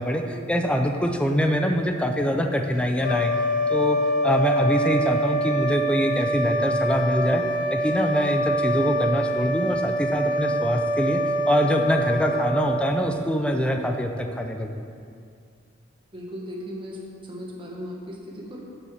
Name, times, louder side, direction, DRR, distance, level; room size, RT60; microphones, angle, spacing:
voice 1, 0.5-3.3 3.7-4.0 4.2-7.4 7.7-11.2 11.5-14.8, equal, 5° left, 4 dB, 0.5 m, -24 dB
sound 1, 2.9-13.6, right 1 dB, 45° left, 0.7 m, -25 dB
voice 2, 16.1-17.0 17.2-18.6, equal, 25° right, -2 dB, 1.4 m, -37 dB
6.4 x 5.9 x 7.2 m, 2.3 s
head